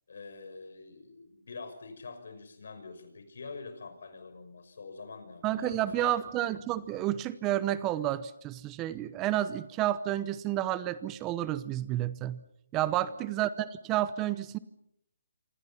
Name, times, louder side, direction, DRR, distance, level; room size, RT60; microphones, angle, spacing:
voice 1, 0.1-6.2 12.8-13.2, left 4 dB, 70° left, 9 dB, 6.1 m, -45 dB
voice 2, 5.4-12.4 12.7-14.6, right 13 dB, 15° right, 15 dB, 0.8 m, -30 dB
27.5 x 26.0 x 5.7 m, 0.73 s
hypercardioid pair, 160°, 0 cm